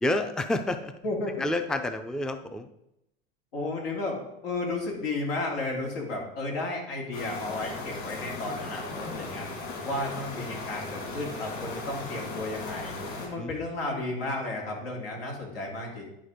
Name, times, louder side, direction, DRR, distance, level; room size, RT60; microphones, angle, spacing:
voice 1, 0.0-0.9 1.4-2.7 13.4-14.0, left 1 dB, ahead, 9 dB, 0.4 m, -30 dB
voice 2, 1.0-1.5 3.5-9.5 9.8-12.9 13.2-16.0, left 2 dB, 90° left, -1 dB, 2.7 m, -33 dB
sound 1, 7.1-13.3, left 2 dB, 50° left, 3.4 m, -37 dB
10.5 x 4.3 x 5.1 m, 0.83 s
supercardioid pair, 110°, 29 cm